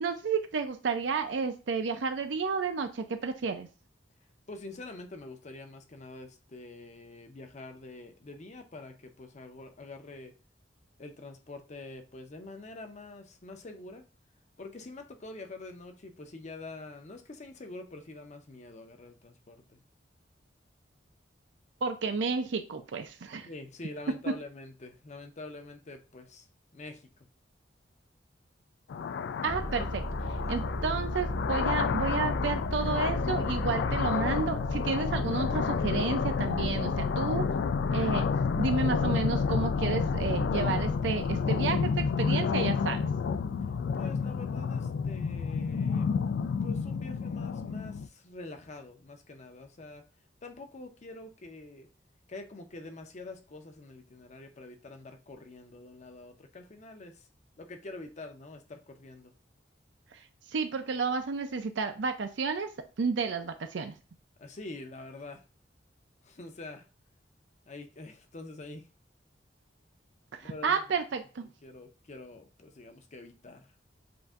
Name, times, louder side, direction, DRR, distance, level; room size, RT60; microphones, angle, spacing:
voice 1, 0.0-3.7 21.8-23.5 29.4-29.9 30.5-37.4 37.9-38.3 38.6-43.0 60.5-62.7 63.0-63.9 70.4-71.5, right 5 dB, 75° right, 0.5 m, -31 dB
voice 2, 4.5-10.3 11.0-14.0 14.6-19.8 23.5-26.5 26.7-27.1 29.8-29.9 30.4-30.7 43.9-46.1 46.5-50.1 50.4-51.9 52.3-57.3 57.6-59.3 64.4-65.4 66.2-66.9 67.7-68.9 70.4-71.0 71.4-73.7, left 2 dB, 40° left, 0.6 m, -46 dB
sound 1, 28.9-48.1, left 6 dB, 70° left, 0.3 m, -30 dB
sound 2, 29.5-42.9, equal, 40° right, 0.7 m, -37 dB
7.6 x 2.6 x 2.4 m
head